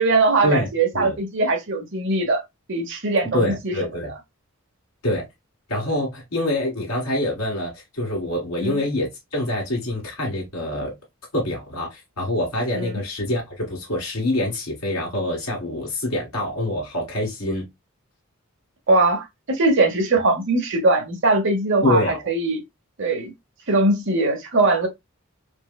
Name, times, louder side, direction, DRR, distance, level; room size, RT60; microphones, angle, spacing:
voice 1, 0.0-2.4 2.7-3.7 8.6-8.8 12.8-13.0 18.9-22.6 23.0-23.3 23.7-24.9, right 2 dB, 55° right, 0.9 m, -21 dB
voice 2, 3.3-4.1 5.0-5.2 5.7-10.9 11.3-17.6 21.8-22.2, left 1 dB, 85° left, 1.7 m, -25 dB
4.4 x 2.2 x 2.2 m
head